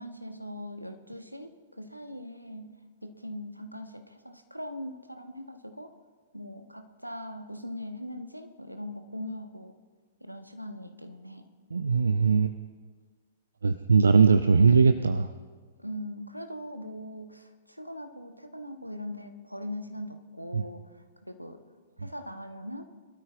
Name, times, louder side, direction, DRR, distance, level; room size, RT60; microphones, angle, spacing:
voice 1, 0.0-5.9 6.3-9.8 10.2-11.5 15.8-21.6 22.0-22.9, left 1 dB, 90° right, 7 dB, 1.0 m, -41 dB
voice 2, 11.7-12.5 13.6-15.3 20.5-20.6, right 5 dB, 70° right, 11 dB, 0.5 m, -20 dB
22.0 x 12.5 x 2.4 m, 1.5 s
figure-of-eight pair, 110°, 0 cm